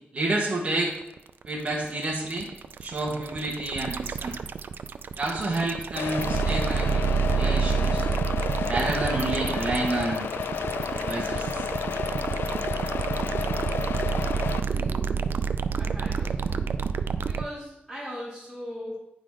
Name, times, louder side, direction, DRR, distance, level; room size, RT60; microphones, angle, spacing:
voice 1, 0.1-0.9 1.4-2.5 2.8-4.4 5.1-8.1 8.7-10.3 10.9-11.7, right 2 dB, 30° right, -3 dB, 1.3 m, -29 dB
sound 1, 0.8-17.4, right 6 dB, 65° right, 0.3 m, -28 dB
sound 2, 6.0-14.6, left 7 dB, 70° left, 0.4 m, -32 dB
voice 2, 14.7-15.3 15.8-16.7 17.0-19.0, equal, ahead, -9 dB, 2.1 m, -39 dB
9.5 x 4.0 x 4.8 m, 0.91 s
wide cardioid pair, 130°, 4 cm